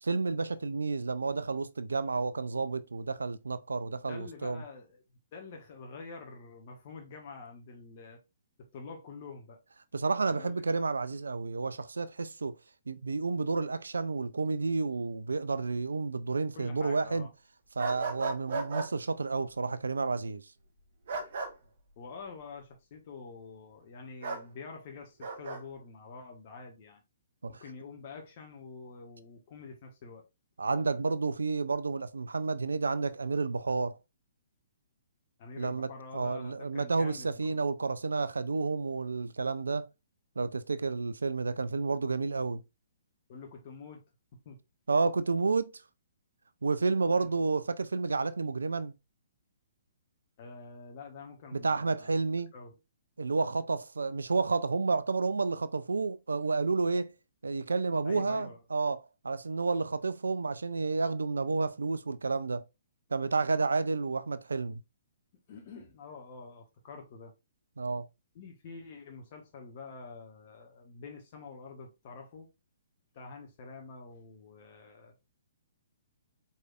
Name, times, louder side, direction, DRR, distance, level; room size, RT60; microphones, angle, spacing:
voice 1, 0.0-4.6 9.9-12.6 12.9-17.3 17.8-20.5 27.4-27.6 30.6-34.0 35.6-39.9 40.4-42.6 44.9-45.7 46.6-48.9 51.5-52.5 53.2-57.1 57.4-62.6 63.1-64.8 67.8-68.1, right 4 dB, 75° right, 0.3 m, -30 dB
voice 2, 4.1-5.0 5.3-8.2 8.7-9.6 10.3-10.5 16.5-17.3 22.0-27.0 27.5-30.3 35.4-37.6 43.3-44.0 44.4-44.6 47.1-47.3 50.4-52.1 52.5-52.7 58.0-58.6 65.5-67.3 68.3-72.5 73.1-75.1, left 4 dB, 45° left, 1.0 m, -47 dB
sound 1, 17.8-18.9 21.1-21.5 24.2-24.4 25.2-25.6, right 3 dB, 55° right, 1.2 m, -35 dB
4.7 x 4.1 x 2.3 m
figure-of-eight pair, 125°, 0 cm